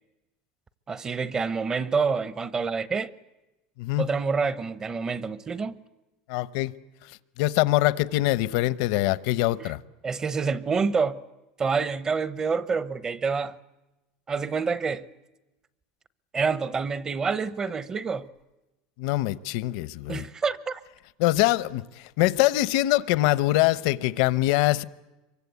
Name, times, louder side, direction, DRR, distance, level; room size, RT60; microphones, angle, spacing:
voice 1, 0.9-3.1 4.0-5.8 9.6-9.7 10.0-11.2 11.6-13.6 14.3-15.1 16.3-18.3 20.1-20.8, right 5 dB, 20° right, 0.8 m, -27 dB
voice 2, 6.3-6.7 7.4-9.8 19.0-20.3 21.2-24.8, left 17 dB, 70° left, 0.9 m, -23 dB
26.0 x 23.5 x 8.3 m
cardioid pair, 145°, 3 cm